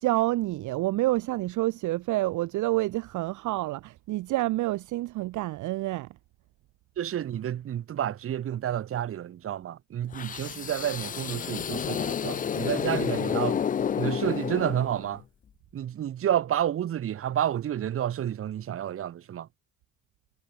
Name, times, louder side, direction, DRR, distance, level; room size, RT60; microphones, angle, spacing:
voice 1, 0.0-6.1, right 18 dB, 60° right, 0.6 m, -28 dB
voice 2, 7.0-13.6 13.9-15.2 15.7-19.5, right 10 dB, 40° right, 1.0 m, -30 dB
sound 1, 10.1-15.2, left 8 dB, 25° left, 0.5 m, -30 dB
cardioid pair, 125°, 34 cm